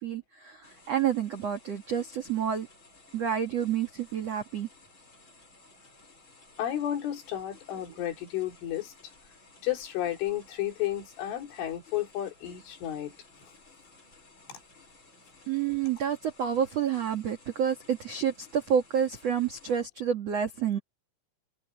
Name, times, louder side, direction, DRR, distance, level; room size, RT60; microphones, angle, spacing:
voice 1, 0.0-2.7 3.1-4.7 15.5-20.8, right 8 dB, 60° right, 1.8 m, -29 dB
sound 1, 0.6-19.8, left 3 dB, 25° left, 6.2 m, -57 dB
voice 2, 6.6-8.9 9.6-13.2 14.5-14.6, left 12 dB, 75° left, 5.9 m, -32 dB
omnidirectional pair, 5.7 m